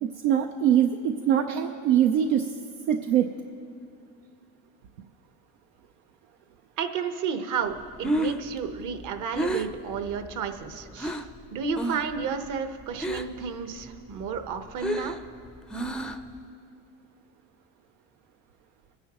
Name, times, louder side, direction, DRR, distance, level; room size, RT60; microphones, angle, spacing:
voice 1, 0.0-2.5 2.9-3.3, right 9 dB, 85° right, 5 dB, 0.7 m, -23 dB
voice 2, 6.8-11.2 11.5-15.2, right 6 dB, 50° right, 7 dB, 1.1 m, -32 dB
Breathing, 7.8-11.4 11.7-12.2 12.4-13.5 13.8-16.4, right 1 dB, ahead, 0.5 m, -31 dB
22.5 x 10.5 x 3.0 m, 2.3 s
supercardioid pair, 105°, 38 cm